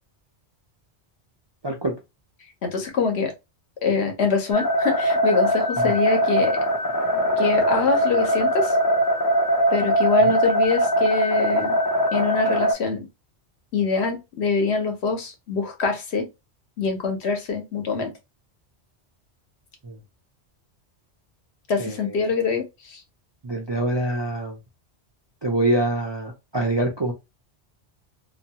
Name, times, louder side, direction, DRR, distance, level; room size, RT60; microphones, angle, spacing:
voice 1, 2.6-3.3 3.8-6.6 7.4-8.8 9.7-11.8 12.1-13.1 13.7-16.3 16.8-18.1 21.7-23.0, left 4 dB, 70° left, 1.0 m, -24 dB
sound 1, 4.5-12.7, equal, 25° left, 0.4 m, -21 dB
voice 2, 21.8-22.1 23.4-24.5 25.4-27.1, right 1 dB, 40° right, 0.4 m, -25 dB
2.7 x 2.3 x 2.8 m
omnidirectional pair, 1.2 m